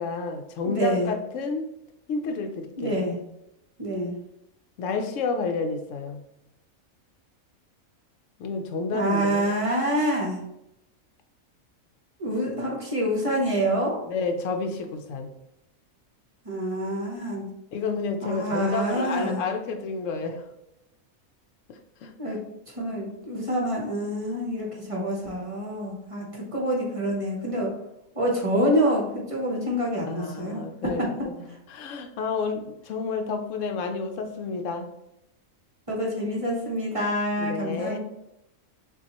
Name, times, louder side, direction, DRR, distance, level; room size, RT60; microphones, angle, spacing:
voice 1, 0.0-1.7 2.1-3.1 4.8-6.2 8.4-9.6 14.1-15.3 17.7-20.5 21.7-22.1 30.1-34.9 37.4-38.0, left 4 dB, 70° left, 5 dB, 0.9 m, -30 dB
voice 2, 0.6-1.1 2.8-3.1 3.8-4.1 8.9-10.4 12.2-14.0 16.4-17.5 18.2-19.4 22.2-22.4 22.7-27.7 28.1-31.1 35.9-38.0, equal, 30° right, -2 dB, 0.7 m, -27 dB
6.8 x 2.4 x 2.9 m, 0.86 s
omnidirectional pair, 1.5 m